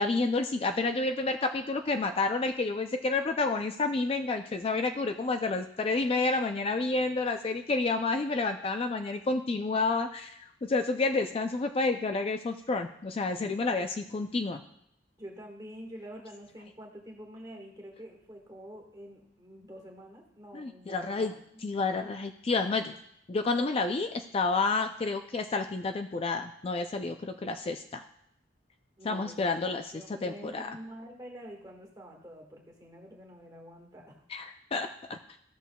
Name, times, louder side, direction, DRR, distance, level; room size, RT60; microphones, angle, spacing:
voice 1, 0.0-14.6 20.5-21.3 21.6-22.9 23.3-28.0 29.0-29.8 30.2-30.7 34.3-35.2, left 3 dB, 30° left, 6 dB, 0.4 m, -30 dB
voice 2, 15.2-21.6 22.6-23.0 29.0-34.2, equal, 20° right, 0 dB, 1.6 m, -47 dB
14.5 x 6.3 x 2.3 m, 0.74 s
head